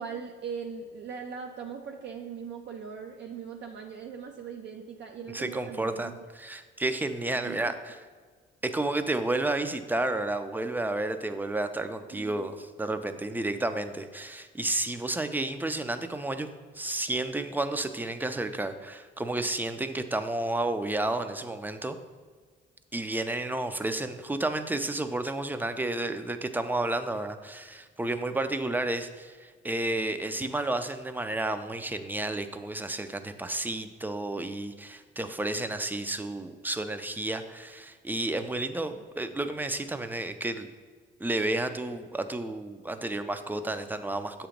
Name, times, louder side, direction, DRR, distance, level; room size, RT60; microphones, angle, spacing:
voice 1, 0.0-6.1 7.3-7.7 12.1-12.5, right 6 dB, 60° right, 2 dB, 0.5 m, -40 dB
voice 2, 5.3-8.0 8.6-16.5 16.7-22.0 22.9-40.7 41.2-44.5, right 2 dB, 10° right, 9 dB, 0.4 m, -31 dB
7.4 x 2.9 x 5.0 m, 1.5 s
cardioid pair, 90°, 20 cm